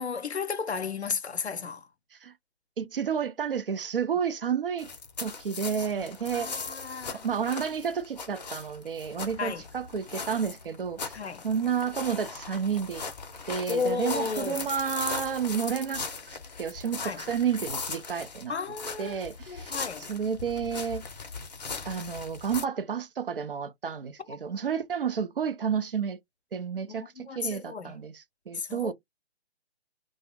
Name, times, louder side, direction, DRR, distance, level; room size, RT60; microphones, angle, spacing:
voice 1, 0.0-1.8 5.9-7.2 9.4-9.6 11.1-11.4 13.7-14.6 17.0-17.2 18.5-19.2 19.5-20.1 26.9-28.0 28.5-28.9, left 5 dB, 85° left, 0.6 m, -33 dB
voice 2, 2.8-4.9 5.2-6.6 7.2-11.2 11.4-13.0 13.5-18.5 19.0-19.8 20.1-21.1 21.9-26.2 26.5-28.9, right 7 dB, 60° right, 0.5 m, -31 dB
sound 1, 4.8-22.6, left 4 dB, 40° left, 0.5 m, -39 dB
2.3 x 2.0 x 2.7 m
figure-of-eight pair, 135°, 32 cm